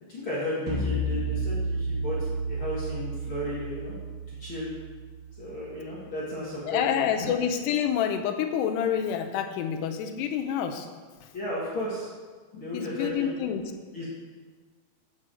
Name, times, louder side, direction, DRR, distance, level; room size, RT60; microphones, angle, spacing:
voice 1, 0.1-4.0 4.4-4.7 5.4-7.3 11.3-12.1 12.5-13.3 13.9-14.0, left 1 dB, 55° left, -8 dB, 1.4 m, -34 dB
sound 1, 0.7-6.0, right 2 dB, 75° right, 1.1 m, -32 dB
voice 2, 6.7-10.9 11.2-11.3 12.7-13.7, left 8 dB, 80° left, 4 dB, 2.7 m, -28 dB
7.6 x 6.1 x 7.7 m, 1.5 s
omnidirectional pair, 5.0 m